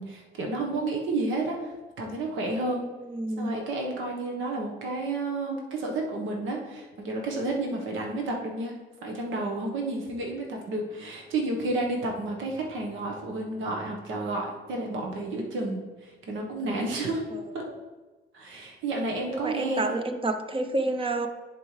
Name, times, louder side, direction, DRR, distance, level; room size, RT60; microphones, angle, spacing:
voice 1, 0.0-1.7 2.0-2.9 3.4-8.7 9.0-17.2 17.5-17.6 18.3-20.0, right 2 dB, 80° right, 0 dB, 1.3 m, -31 dB
voice 2, 3.1-3.5 17.3-17.7 19.3-21.3, right 2 dB, 25° right, 7 dB, 0.7 m, -29 dB
10.5 x 4.6 x 3.3 m, 1.2 s
cardioid pair, 90°, 20 cm